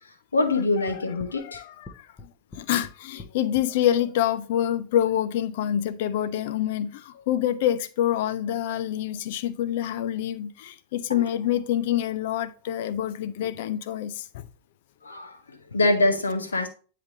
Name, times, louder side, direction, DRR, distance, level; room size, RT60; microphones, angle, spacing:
voice 1, 0.3-1.6 11.1-11.3 15.0-16.7, left 2 dB, 75° left, 0.9 m, -24 dB
sound 1, 0.9-3.7, left 3 dB, 20° left, 0.9 m, -44 dB
voice 2, 2.6-14.4, left 11 dB, 50° left, 0.5 m, -26 dB
9.5 x 3.3 x 3.8 m
figure-of-eight pair, 90°, 0 cm